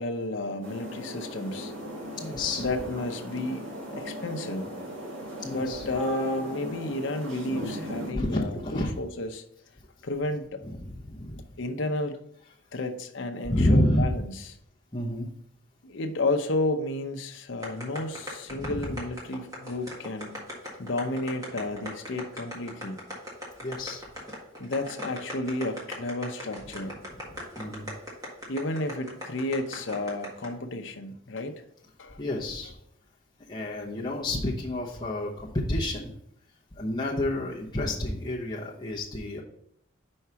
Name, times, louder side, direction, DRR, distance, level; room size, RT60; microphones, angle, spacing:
voice 1, 0.0-1.7 2.6-3.6 4.0-4.7 5.5-9.4 10.0-10.6 11.6-12.2 12.7-14.3 15.8-20.4 20.8-23.0 24.6-27.0 28.5-31.5 32.0-32.2, left 2 dB, 65° left, 5 dB, 0.8 m, -32 dB
sound 1, 0.6-8.1, equal, 85° right, 1.8 m, -37 dB
voice 2, 2.2-2.7 5.4-5.9 8.2-8.9 10.6-11.4 13.5-14.1 14.9-15.3 18.5-19.0 23.6-24.0 27.1-27.9 32.2-32.7 33.5-36.1 36.7-39.4, left 1 dB, 20° left, -6 dB, 0.9 m, -29 dB
sound 2, 17.6-30.5, equal, 20° right, 1.7 m, -38 dB
5.4 x 4.7 x 5.7 m, 0.72 s
head